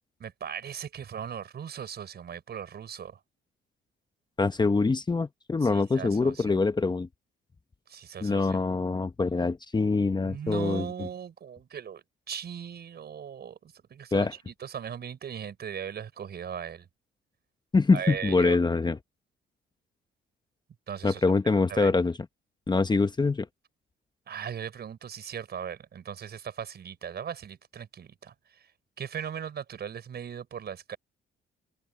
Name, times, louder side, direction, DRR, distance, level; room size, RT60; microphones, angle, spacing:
voice 1, 0.2-3.2 5.6-6.6 7.9-8.6 10.2-16.9 17.9-18.6 20.9-21.2 21.5-21.9 24.3-28.7 29.0-31.0, right 8 dB, 55° right, 5.2 m, -38 dB
voice 2, 4.4-7.1 8.2-10.9 14.1-14.3 17.7-19.0 21.0-22.2 22.7-23.5, left 3 dB, 20° left, 0.9 m, -24 dB
cardioid pair, 90°, 20 cm